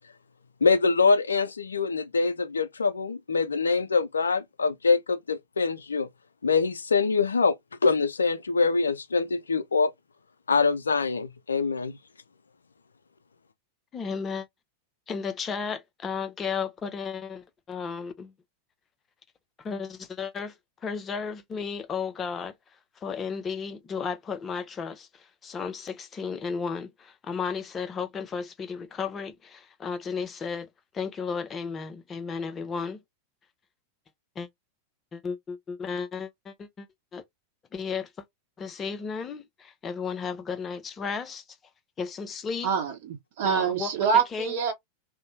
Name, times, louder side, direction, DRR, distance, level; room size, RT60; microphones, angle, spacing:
voice 1, 0.6-6.1 6.4-7.6 7.8-9.9 10.5-11.9, left 4 dB, 75° left, 0.3 m, -24 dB
voice 2, 13.9-14.5 15.1-18.3 19.6-22.5 23.0-30.7 30.9-33.0 34.4-34.5 35.1-37.2 37.7-38.3 38.6-41.4 42.0-42.7 43.4-43.9 44.3-44.6, left 5 dB, 20° left, 0.5 m, -34 dB
voice 3, 42.6-44.7, right 6 dB, 50° right, 0.7 m, -25 dB
2.7 x 2.0 x 2.6 m
figure-of-eight pair, 90°, 0 cm